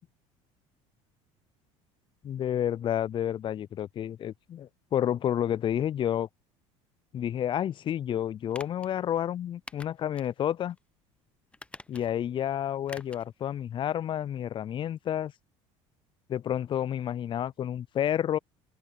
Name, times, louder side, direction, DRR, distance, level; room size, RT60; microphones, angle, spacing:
voice 1, 2.2-6.3 7.1-10.8 11.9-15.3 16.3-18.4, left 10 dB, 35° left, 0.4 m, -30 dB
sound 1, 8.5-8.9 9.7-10.3 10.7-10.8 11.5-12.3 12.9-13.3 13.6-13.7, left 2 dB, 10° left, 0.8 m, -47 dB
open air
supercardioid pair, 80°, 15 cm